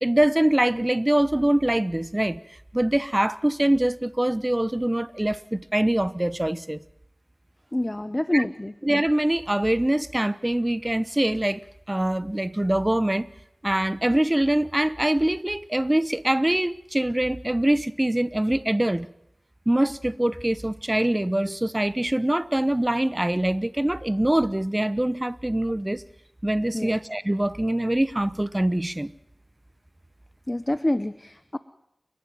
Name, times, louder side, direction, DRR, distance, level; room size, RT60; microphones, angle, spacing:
voice 1, 0.0-2.4 2.7-6.8 8.3-8.5 8.8-11.6 11.9-13.3 13.6-19.1 19.7-26.0 26.4-29.1, right 1 dB, 25° right, 1.0 m, -24 dB
voice 2, 7.7-8.7 26.7-26.9 30.5-31.6, left 1 dB, 25° left, 0.9 m, -26 dB
29.5 x 12.0 x 9.4 m
wide cardioid pair, 40°, 0 cm